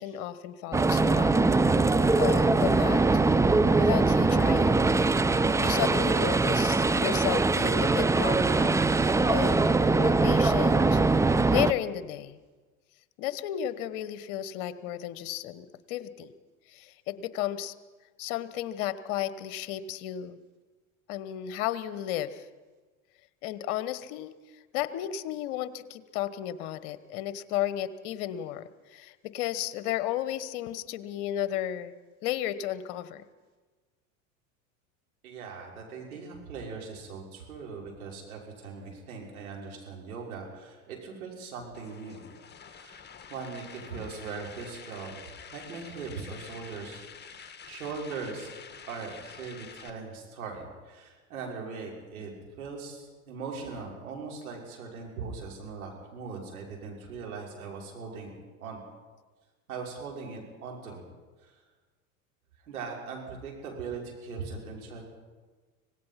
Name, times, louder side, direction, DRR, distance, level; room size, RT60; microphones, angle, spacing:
voice 1, 0.0-1.3 1.8-3.0 3.8-4.9 5.6-11.0 11.5-12.4 13.2-16.3 16.7-17.7 18.2-20.4 21.1-22.5 23.4-24.3 24.7-31.9 32.2-33.2, left 12 dB, 55° left, 14 dB, 1.2 m, -33 dB
sound 1, 0.7-11.7, right 3 dB, 5° right, 0.5 m, -22 dB
voice 2, 35.2-42.2 42.7-45.2 45.5-48.5 48.9-52.3 52.6-58.3 58.6-58.8 59.7-61.0 61.4-61.6 62.6-65.0, right 4 dB, 75° right, -1 dB, 5.8 m, -40 dB
sound 2, 41.7-49.9, left 6 dB, 25° left, 2.1 m, -48 dB
25.5 x 18.0 x 5.8 m, 1.3 s
hypercardioid pair, 80°, 43 cm